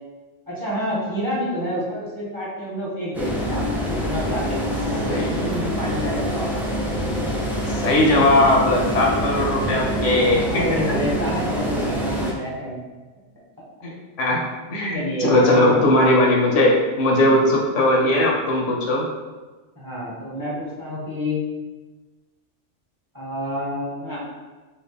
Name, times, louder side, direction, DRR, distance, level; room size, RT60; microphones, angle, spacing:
voice 1, 0.5-6.5 10.5-12.8 14.9-16.0 19.8-21.4 23.1-24.2, equal, 20° right, -6 dB, 1.0 m, -29 dB
sound 1, 3.1-12.3, equal, ahead, 0.4 m, -25 dB
voice 2, 7.7-10.6 13.8-14.4 14.7-19.0, left 1 dB, 75° left, -1 dB, 1.1 m, -19 dB
4.3 x 2.8 x 3.3 m, 1.3 s
omnidirectional pair, 1.3 m